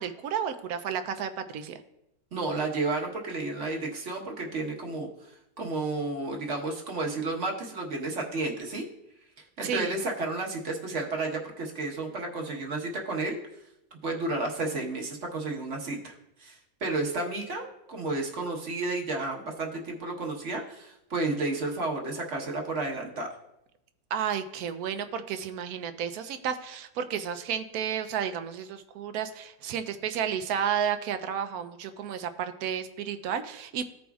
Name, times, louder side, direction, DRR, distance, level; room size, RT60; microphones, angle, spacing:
voice 1, 0.0-1.8 9.6-9.9 24.1-33.9, right 8 dB, 70° right, 10 dB, 1.0 m, -32 dB
voice 2, 2.3-8.9 9.6-13.4 13.9-16.1 16.4-23.3, right 2 dB, 50° right, 0 dB, 1.4 m, -32 dB
15.0 x 5.1 x 2.3 m, 0.85 s
omnidirectional pair, 1.7 m